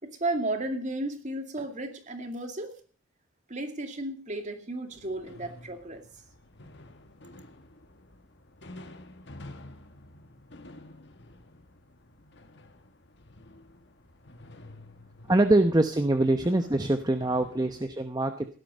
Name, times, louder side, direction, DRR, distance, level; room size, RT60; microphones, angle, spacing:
voice 1, 0.0-2.8 3.5-6.0, right 2 dB, 35° right, 6 dB, 2.4 m, -33 dB
sound 1, 4.9-17.9, left 1 dB, 55° left, 1.6 m, -50 dB
voice 2, 15.3-18.5, right 2 dB, 20° right, 8 dB, 0.8 m, -24 dB
17.0 x 11.5 x 5.4 m, 0.40 s
head